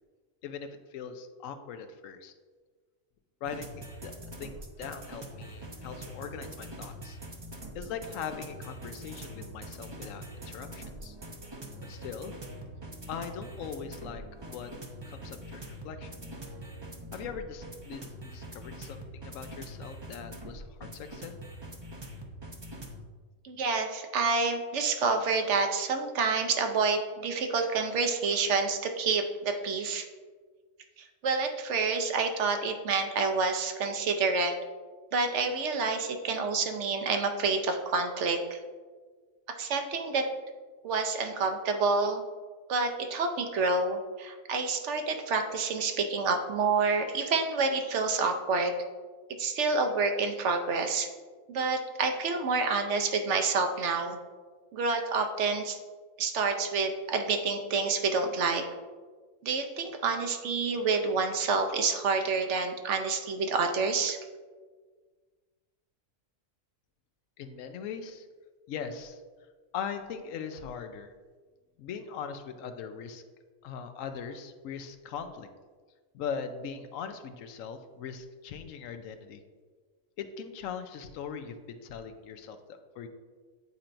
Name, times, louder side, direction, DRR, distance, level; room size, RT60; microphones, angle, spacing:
voice 1, 0.4-2.3 3.4-4.1 4.4-7.2 7.7-11.2 11.8-12.4 13.1-14.7 15.1-16.2 17.1-21.3 67.4-68.3 68.7-69.2 69.7-71.1 71.8-73.2 73.6-75.5 76.1-79.4 80.2-83.1, left 6 dB, 80° left, 8 dB, 0.9 m, -40 dB
sound 1, 3.4-23.0, right 1 dB, 30° right, 0.5 m, -44 dB
voice 2, 23.4-30.0 31.0-34.5 35.1-38.6 39.6-40.3 40.8-42.2 42.7-48.7 49.4-51.1 51.5-54.2 54.7-55.8 56.2-58.7 59.4-64.2, right 4 dB, 65° right, 5 dB, 0.9 m, -28 dB
9.5 x 4.3 x 2.6 m, 1.5 s
omnidirectional pair, 1.4 m